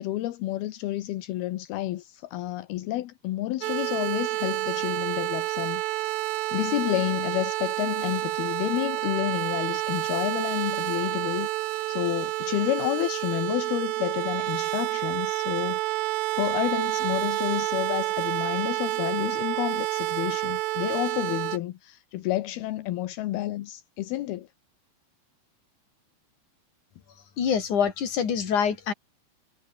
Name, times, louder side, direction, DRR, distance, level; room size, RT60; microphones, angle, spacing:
voice 1, 0.0-24.5, left 15 dB, 80° left, 3.0 m, -30 dB
sound 1, 3.6-21.6, right 18 dB, 75° right, 2.2 m, -29 dB
voice 2, 27.4-28.9, left 7 dB, 50° left, 4.5 m, -25 dB
omnidirectional pair, 4.6 m